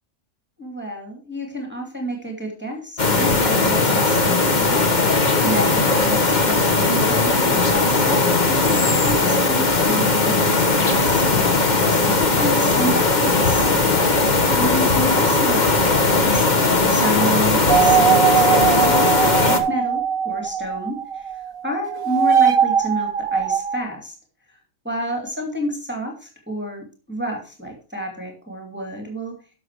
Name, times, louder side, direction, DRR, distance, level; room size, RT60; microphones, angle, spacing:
voice 1, 0.6-4.8 5.4-8.2 8.5-13.7 14.5-16.5 16.9-24.2 24.5-24.6 24.8-29.4, equal, 10° right, 0 dB, 2.3 m, -30 dB
sound 1, 3.0-19.6, left 3 dB, 35° left, 1.4 m, -18 dB
sound 2, 17.7-21.5 21.8-23.8, right 8 dB, 50° right, 0.8 m, -20 dB
11.5 x 6.6 x 4.7 m, 0.35 s
omnidirectional pair, 1.4 m